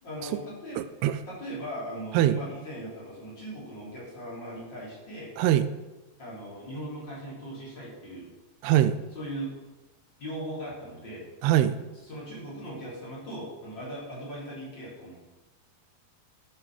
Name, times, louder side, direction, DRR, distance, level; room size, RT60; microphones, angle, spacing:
voice 1, 0.0-0.8 1.3-5.3 6.2-8.3 9.1-9.5 10.2-11.3 12.1-15.2, equal, 30° left, -6 dB, 4.1 m, -39 dB
voice 2, 0.8-1.2 2.1-2.4 5.4-5.7 8.6-9.0 11.4-11.8, right 12 dB, 85° right, 12 dB, 2.6 m, -22 dB
12.0 x 7.0 x 6.2 m, 1.1 s
omnidirectional pair, 4.5 m